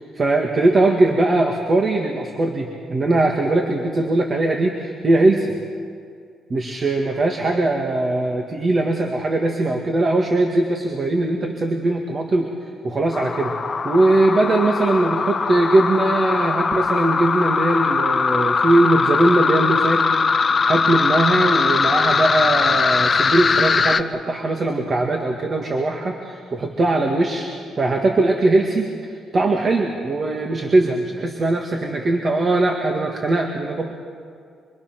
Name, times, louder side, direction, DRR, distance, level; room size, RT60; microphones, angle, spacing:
voice 1, 0.2-5.6 6.5-12.5 12.8-13.5 13.8-20.1 20.4-27.5 27.8-33.9, right 2 dB, 40° right, 2 dB, 2.1 m, -20 dB
sound 1, 13.1-24.0, left 5 dB, 35° left, 0.9 m, -20 dB
25.0 x 24.5 x 6.1 m, 2.2 s
cardioid pair, 90°, 0 cm